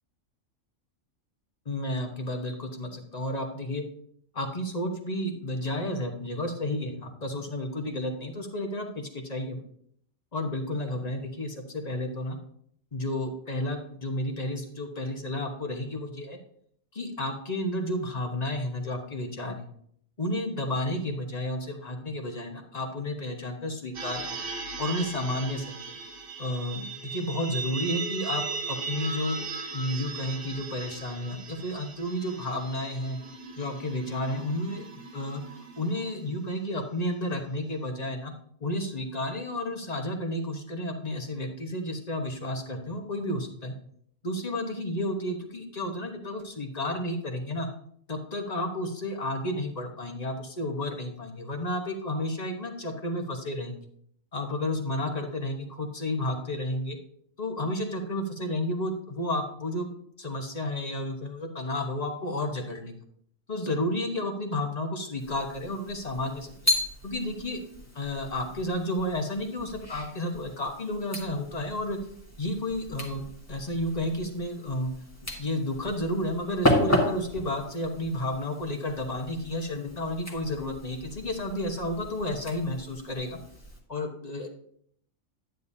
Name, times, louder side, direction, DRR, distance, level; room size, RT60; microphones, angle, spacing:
voice 1, 1.6-3.8 4.3-9.6 10.3-12.4 12.9-16.4 16.9-19.7 20.2-24.2 24.8-25.9 26.4-29.4 29.7-33.2 33.6-35.4 35.8-38.3 38.6-43.7 44.2-47.7 48.1-53.9 54.3-57.0 57.4-59.9 60.2-62.9 63.5-66.6 67.0-67.6 67.9-72.0 72.4-74.9 75.4-83.4 83.9-84.5, left 1 dB, 30° left, 4 dB, 1.1 m, -32 dB
sound 1, 23.9-36.5, right 4 dB, 45° right, 1.5 m, -38 dB
Glass Tap, 65.2-83.8, left 1 dB, 10° left, 1.4 m, -34 dB
10.5 x 9.2 x 2.7 m, 0.66 s
omnidirectional pair, 1.4 m